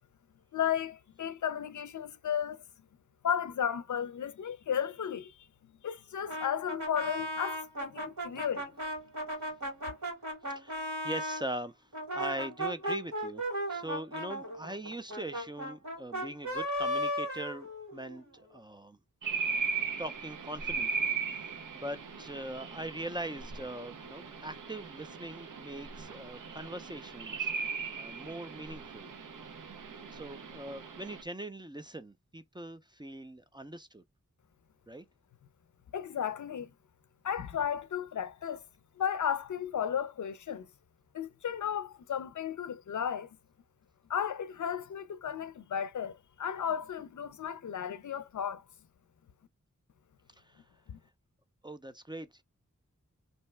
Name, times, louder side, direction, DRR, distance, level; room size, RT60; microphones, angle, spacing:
voice 1, 0.5-2.6 3.2-5.4 5.8-8.7 35.9-36.7 37.2-38.6 39.0-40.7 41.1-43.3 44.1-48.6 50.9-51.0, left 8 dB, 70° left, 0.4 m, -34 dB
Brass instrument, 6.3-11.5 11.9-18.2, equal, 70° right, 1.6 m, -36 dB
voice 2, 10.5-13.4 13.7-19.0 20.0-29.1 30.1-34.0 34.9-35.0 50.5-50.6 51.6-52.4, right 1 dB, 15° right, 0.4 m, -42 dB
sound 1, 19.2-31.2, right 5 dB, 85° right, 0.6 m, -38 dB
2.7 x 2.1 x 3.1 m
wide cardioid pair, 45°, 31 cm